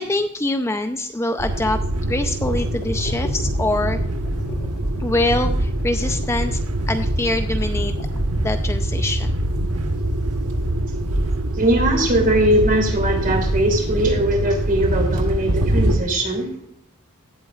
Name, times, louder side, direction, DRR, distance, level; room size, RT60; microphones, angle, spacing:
voice 1, 0.0-4.0 5.0-6.6 6.9-7.9 8.4-9.4, left 2 dB, 10° left, 7 dB, 0.5 m, -24 dB
sound 1, 1.4-16.0, right 1 dB, 85° right, 1.2 m, -23 dB
sound 2, 2.6-8.6, left 1 dB, 45° left, 1.6 m, -36 dB
voice 2, 11.5-16.6, right 1 dB, 40° right, 2 dB, 3.1 m, -20 dB
17.0 x 8.3 x 2.4 m, 0.66 s
head